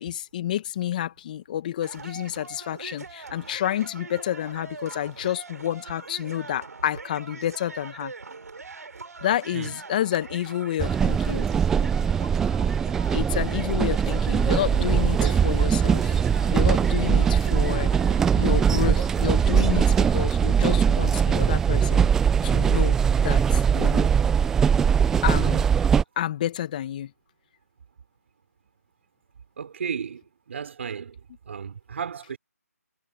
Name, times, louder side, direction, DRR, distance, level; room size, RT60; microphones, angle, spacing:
voice 1, 0.0-8.1 9.2-11.5 13.1-16.2 16.5-17.9 18.3-22.1 22.4-23.0 23.2-24.1 25.2-25.7 26.1-27.1, left 11 dB, 30° left, 1.6 m, -29 dB
sound 1, 1.8-20.1, right 4 dB, 70° right, 4.1 m, -42 dB
sound 2, 10.8-26.0, right 7 dB, 5° right, 0.6 m, -21 dB
voice 2, 14.8-15.4 29.6-32.4, right 7 dB, 45° right, 6.2 m, -34 dB
figure-of-eight pair, 160°, 9 cm